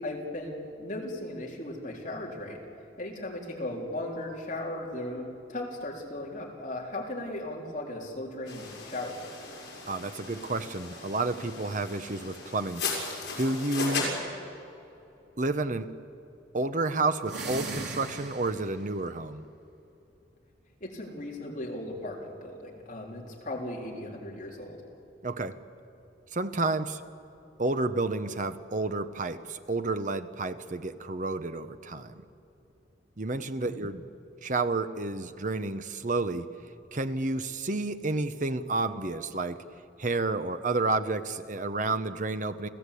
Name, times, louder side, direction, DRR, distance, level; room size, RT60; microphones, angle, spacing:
voice 1, 0.0-2.6 3.0-9.2 20.8-24.8 33.6-33.8, left 1 dB, 40° left, -2 dB, 3.6 m, -37 dB
sound 1, 8.5-14.1, left 4 dB, 60° left, 6.5 m, -37 dB
voice 2, 9.9-12.8 13.4-14.1 15.4-15.9 16.5-19.4 25.2-25.6 26.3-27.0 27.6-32.1 33.2-34.0 34.4-36.5 36.9-39.6 40.0-42.7, right 3 dB, 45° right, 10 dB, 0.9 m, -30 dB
sound 2, 17.2-18.8, right 3 dB, 65° right, 3.3 m, -37 dB
30.0 x 14.5 x 8.4 m, 2.8 s
head